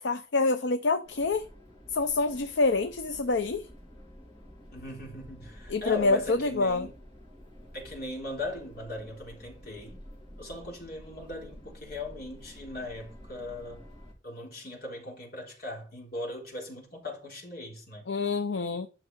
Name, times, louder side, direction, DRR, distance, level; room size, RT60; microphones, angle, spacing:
voice 1, 0.0-1.5 1.9-3.7 5.7-6.9 18.1-18.9, left 3 dB, 75° left, 0.7 m, -26 dB
sound 1, 1.0-14.1, equal, 25° left, 4.3 m, -50 dB
voice 2, 4.7-6.9 7.7-10.0 10.4-13.8 14.2-18.1, left 1 dB, 55° left, 3.5 m, -39 dB
11.5 x 5.9 x 4.6 m
head